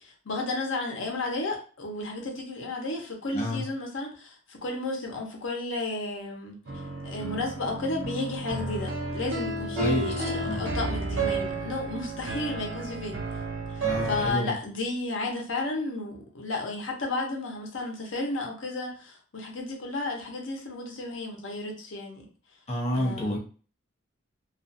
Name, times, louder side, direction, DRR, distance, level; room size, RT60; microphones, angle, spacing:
voice 1, 0.0-6.6 7.0-13.2 13.7-22.2 22.9-23.4, left 2 dB, 75° left, 1 dB, 0.7 m, -33 dB
voice 2, 3.3-3.6 9.8-10.6 13.8-14.5 22.7-23.4, left 1 dB, 35° left, -1 dB, 0.7 m, -29 dB
sound 1, 6.7-14.3, right 2 dB, 70° right, 0.7 m, -32 dB
2.4 x 2.3 x 2.6 m, 0.40 s
head